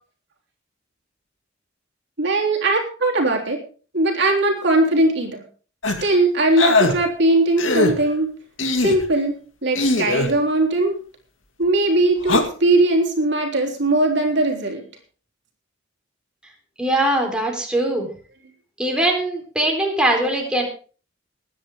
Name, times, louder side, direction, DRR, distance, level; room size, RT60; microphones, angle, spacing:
voice 1, 2.2-3.6 3.9-5.4 6.0-8.3 8.8-11.0 11.6-14.8, right 2 dB, 60° right, 1 dB, 3.6 m, -19 dB
sound 1, 5.8-6.1 6.6-6.9 7.6-7.9 8.6-9.0 9.8-10.3 12.2-12.4, left 2 dB, 75° left, 2.3 m, -19 dB
voice 2, 16.8-18.1 18.8-20.6, right 1 dB, 5° right, 1 dB, 3.9 m, -21 dB
21.0 x 9.9 x 3.7 m, 0.39 s
head